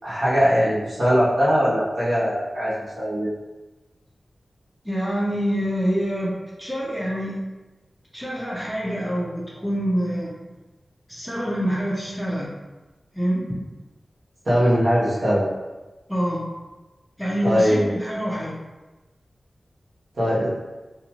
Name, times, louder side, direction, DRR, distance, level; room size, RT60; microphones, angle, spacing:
voice 1, 0.0-3.3 14.4-15.5 17.4-17.9 20.1-20.5, equal, 65° right, -9 dB, 1.1 m, -20 dB
voice 2, 4.8-6.3 6.6-7.4 8.1-10.5 11.1-12.5 13.1-13.4 15.2-15.3 16.1-16.5 17.2-18.5, equal, ahead, -6 dB, 0.6 m, -26 dB
2.5 x 2.3 x 2.9 m, 1.1 s
wide cardioid pair, 85°, 0 cm